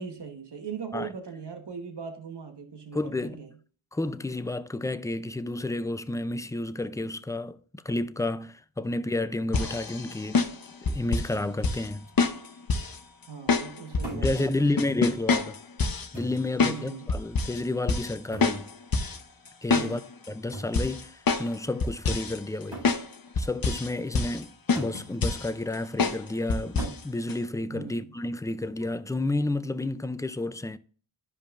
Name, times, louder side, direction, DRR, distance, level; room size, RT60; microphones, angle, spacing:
voice 1, 0.0-3.5 13.3-14.7 16.6-17.1 19.7-20.0 27.7-28.1, right 6 dB, 55° right, 1.3 m, -39 dB
voice 2, 2.9-3.4 3.9-10.5 10.9-12.1 14.1-15.6 16.1-18.7 19.6-20.0 20.3-23.0 23.4-30.8, left 2 dB, 10° left, 0.3 m, -31 dB
sound 1, 9.5-11.3 11.6-11.9 12.2-13.0 13.5-14.4 14.8-16.1 16.6-16.8 17.1-17.6 17.9-18.1 18.4-19.2 19.5-20.3 20.7-21.6 21.8-22.4 22.8-23.1 23.4-23.9 24.2-24.4 24.7-25.5 26.0-26.2 26.5-27.0 27.3-27.4, left 4 dB, 45° left, 0.8 m, -26 dB
sound 2, 14.0-14.4 15.4-15.5 16.1-16.5 18.3-18.7 20.5-20.8 21.9-22.0 22.7-23.0 24.8-25.0 26.8-27.1 28.6-29.0, right 1 dB, 75° right, 4.2 m, -40 dB
12.0 x 5.2 x 2.5 m
wide cardioid pair, 70°, 48 cm